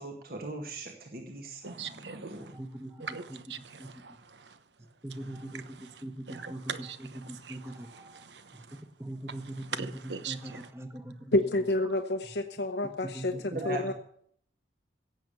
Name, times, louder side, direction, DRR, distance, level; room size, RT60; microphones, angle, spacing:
voice 1, 0.0-2.5 13.3-13.9, right 2 dB, 55° right, 1.8 m, -40 dB
voice 2, 1.6-2.5 3.0-4.6 6.3-7.0 7.4-7.6 7.9-8.7 9.8-10.6, right 6 dB, 85° right, 1.0 m, -41 dB
voice 3, 2.5-3.4 3.8-3.9 4.8-8.3 8.5-8.6 9.0-11.4 11.8-11.9 13.0-13.9, right 1 dB, 15° right, 1.2 m, -42 dB
voice 4, 11.3-13.3 13.6-13.9, left 1 dB, 75° left, 0.9 m, -28 dB
16.5 x 7.6 x 6.8 m
head